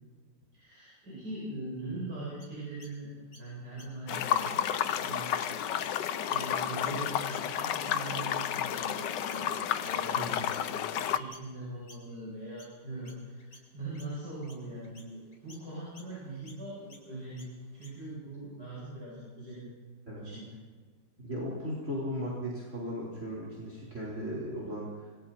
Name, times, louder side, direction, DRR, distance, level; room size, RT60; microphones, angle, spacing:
voice 1, 0.5-5.7 6.3-9.5 9.8-17.5 17.7-19.7 20.2-20.5, right 1 dB, 60° right, -7 dB, 8.5 m, -41 dB
Chirp tweet, 2.4-8.1 8.4-18.1, left 2 dB, 55° left, 4.3 m, -58 dB
sound 1, 4.1-11.2, left 9 dB, 75° left, 1.4 m, -31 dB
voice 2, 21.2-25.1, equal, 40° right, -4 dB, 4.7 m, -37 dB
27.0 x 23.0 x 4.4 m, 1.5 s
omnidirectional pair, 2.0 m